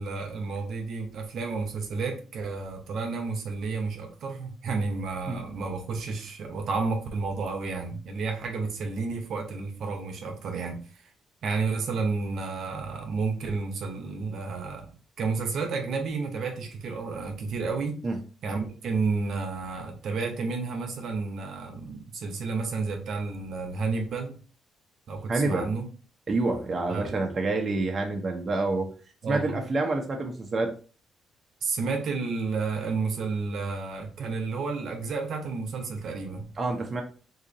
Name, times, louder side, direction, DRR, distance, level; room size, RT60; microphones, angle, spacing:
voice 1, 0.0-10.8 11.4-18.0 18.4-24.4 25.1-25.8 26.9-27.2 29.2-29.6 31.6-36.5, right 4 dB, 70° right, 4 dB, 0.8 m, -31 dB
voice 2, 25.3-25.7 26.3-28.9 29.3-30.7 36.6-37.0, right 2 dB, 35° right, 2 dB, 0.7 m, -27 dB
2.7 x 2.5 x 3.9 m, 0.38 s
cardioid pair, 90°, 0 cm